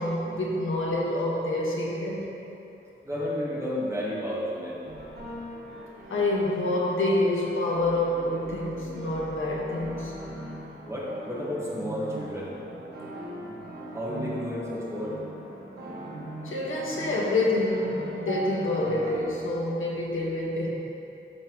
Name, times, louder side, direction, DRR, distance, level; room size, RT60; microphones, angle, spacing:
voice 1, 0.0-2.3 6.1-10.2 16.4-20.7, left 1 dB, 75° left, -4 dB, 1.5 m, -27 dB
voice 2, 3.0-4.8 10.8-12.5 13.9-15.2, equal, 15° right, -6 dB, 1.5 m, -32 dB
sound 1, 3.1-3.3 4.8-19.2, equal, 50° right, 1.4 m, -40 dB
11.5 x 5.8 x 3.1 m, 2.9 s
wide cardioid pair, 105°, 21 cm